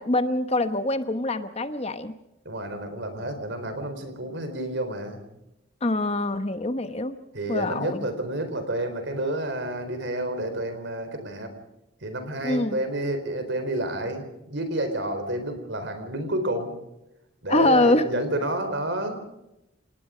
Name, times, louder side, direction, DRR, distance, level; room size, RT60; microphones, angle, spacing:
voice 1, 0.0-2.1 5.8-7.2 7.5-8.0 12.4-12.8 17.5-18.1, left 2 dB, 30° left, 10 dB, 1.0 m, -24 dB
voice 2, 2.4-5.2 7.3-11.5 12.0-16.8 17.4-19.2, right 1 dB, 60° right, 8 dB, 4.1 m, -30 dB
28.0 x 19.0 x 5.1 m, 0.90 s
head